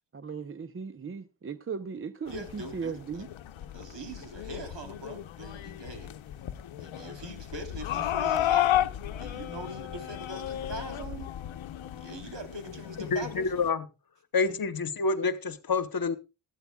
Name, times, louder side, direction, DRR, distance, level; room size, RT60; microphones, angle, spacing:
voice 1, 0.1-3.3, right 5 dB, 30° right, 0.6 m, -37 dB
sound 1, 2.3-13.7, left 12 dB, 75° left, 0.8 m, -33 dB
voice 2, 2.3-3.3 3.7-6.1 6.8-8.9 9.2-11.4 11.8-13.3, right 2 dB, 65° right, 3.4 m, -42 dB
voice 3, 13.0-13.9 14.3-16.2, left 4 dB, 50° left, 1.1 m, -28 dB
19.0 x 13.5 x 2.3 m
cardioid pair, 90°, 47 cm